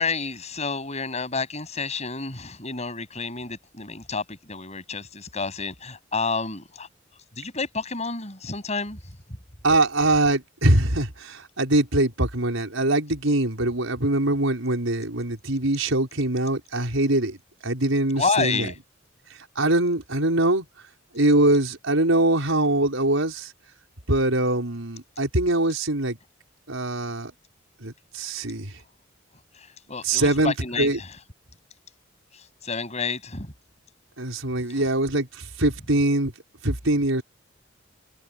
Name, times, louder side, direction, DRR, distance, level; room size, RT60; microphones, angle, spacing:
voice 1, 0.0-6.9 7.4-9.1 18.1-18.8 29.5-31.2 32.3-33.5 34.7-34.9, left 4 dB, 35° left, 7.7 m, -30 dB
voice 2, 9.6-17.4 17.6-18.7 19.5-20.6 21.1-23.5 24.1-26.2 26.7-27.3 27.8-28.7 30.1-31.0 34.2-36.3 36.6-37.2, right 2 dB, 80° right, 5.1 m, -23 dB
head